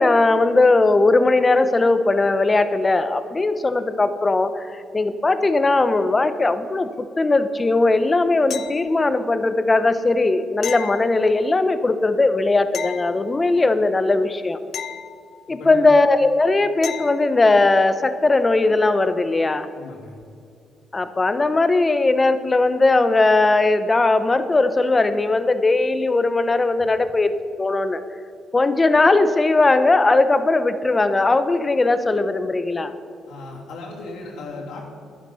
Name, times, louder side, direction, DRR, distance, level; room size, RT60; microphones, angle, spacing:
voice 1, 0.0-14.6 15.5-19.7 20.9-28.0 28.5-32.9, left 2 dB, 25° left, 11 dB, 0.8 m, -19 dB
sound 1, 8.5-9.3 10.6-11.7 12.7-13.8 14.7-15.8 16.8-17.4 20.2-20.3, left 9 dB, 65° left, 0.6 m, -35 dB
voice 2, 19.7-20.2 26.8-26.9 33.3-35.0, left 3 dB, 85° left, -2 dB, 3.0 m, -36 dB
11.0 x 10.0 x 5.6 m, 2.4 s
cardioid pair, 90°, 0 cm